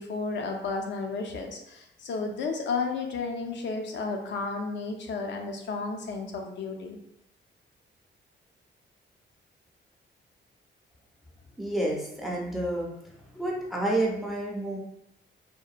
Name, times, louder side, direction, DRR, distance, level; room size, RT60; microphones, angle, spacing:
voice 1, 0.0-7.0, left 4 dB, 65° left, 3 dB, 0.4 m, -32 dB
voice 2, 11.6-12.9 13.3-14.8, right 1 dB, ahead, -2 dB, 0.4 m, -29 dB
2.8 x 2.1 x 2.4 m, 0.80 s
cardioid pair, 125°, 20 cm